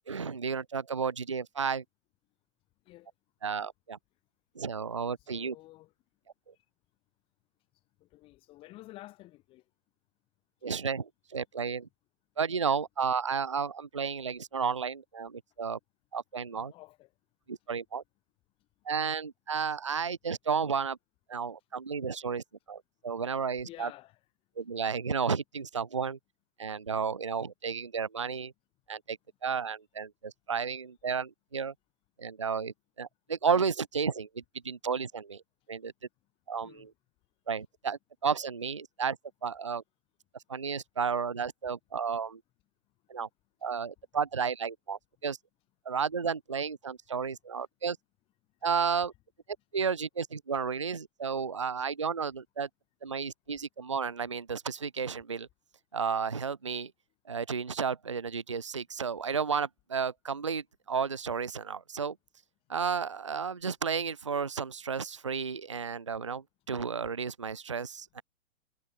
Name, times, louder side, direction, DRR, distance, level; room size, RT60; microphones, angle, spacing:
voice 1, 0.1-1.8 3.4-4.0 4.6-5.5 10.6-11.9 12.4-15.8 16.1-16.7 17.5-18.0 18.9-21.0 21.3-23.9 24.6-26.2 26.6-28.5 28.9-31.7 32.2-35.4 35.7-35.9 36.5-36.9 37.5-39.8 40.5-42.4 43.1-43.3 43.6-45.4 45.9-48.0 48.6-49.1 49.7-52.7 53.0-55.5 55.9-56.9 57.3-62.2 62.7-68.2, right 6 dB, 25° right, 0.5 m, -32 dB
voice 2, 5.3-5.9 8.0-9.6 16.5-17.1 23.6-24.2 36.6-36.9, left 17 dB, 15° left, 5.1 m, -50 dB
hypercardioid pair, 180°, 40 cm